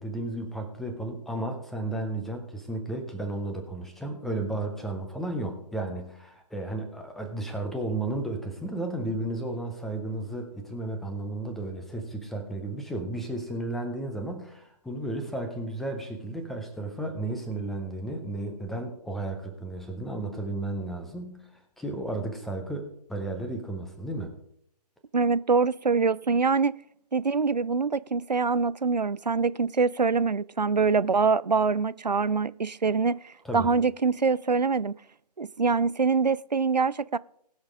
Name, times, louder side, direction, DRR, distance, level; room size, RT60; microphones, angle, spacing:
voice 1, 0.0-21.5 21.8-24.3 33.4-33.7, right 2 dB, ahead, 0.5 m, -33 dB
voice 2, 25.1-26.8 27.1-34.9 35.4-37.2, right 4 dB, 90° right, 0.4 m, -24 dB
19.0 x 6.4 x 3.6 m
figure-of-eight pair, 140°, 21 cm